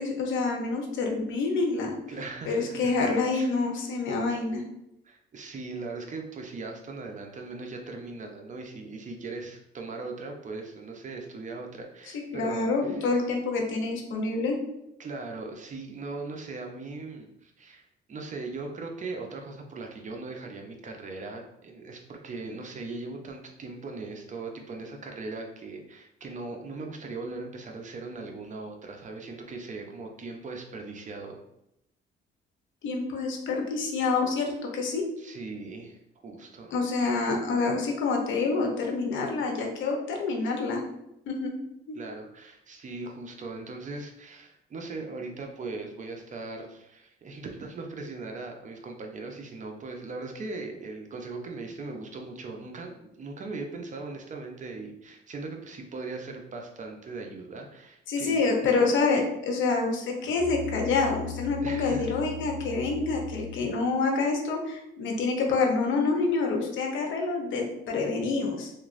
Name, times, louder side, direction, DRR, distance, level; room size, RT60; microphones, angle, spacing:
voice 1, 0.0-1.9 2.5-4.6 12.3-14.6 32.8-35.0 36.7-40.8 41.3-41.5 41.9-42.0 58.1-68.7, left 3 dB, 75° left, 1 dB, 0.7 m, -27 dB
voice 2, 2.1-2.9 3.3-3.5 5.1-13.0 15.0-31.4 35.2-36.7 41.9-58.4 61.6-62.2, right 3 dB, 40° right, 3 dB, 0.5 m, -39 dB
Musical instrument, 60.2-63.7, left 5 dB, 30° left, 1.0 m, -39 dB
2.9 x 2.5 x 2.4 m, 0.82 s
cardioid pair, 90°, 20 cm